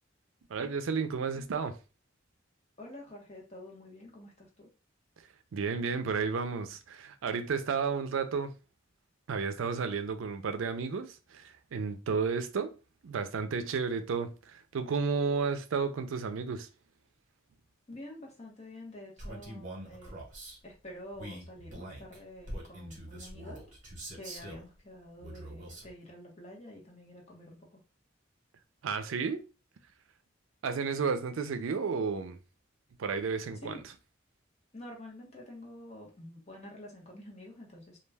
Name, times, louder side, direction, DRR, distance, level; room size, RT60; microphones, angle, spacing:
voice 1, 0.5-1.7 5.5-8.5 9.3-12.7 13.0-16.7 28.8-29.4 30.6-32.4 33.0-33.8, right 5 dB, 85° right, 0.4 m, -32 dB
voice 2, 2.8-4.7 17.9-20.2 20.6-23.6 24.1-27.8 33.6-33.8 34.7-38.0, left 1 dB, 35° left, 0.9 m, -48 dB
Male speech man speaking, 19.2-20.6 21.1-24.7 25.2-25.9, right 1 dB, 40° right, 1.0 m, -44 dB
2.3 x 2.2 x 3.2 m
head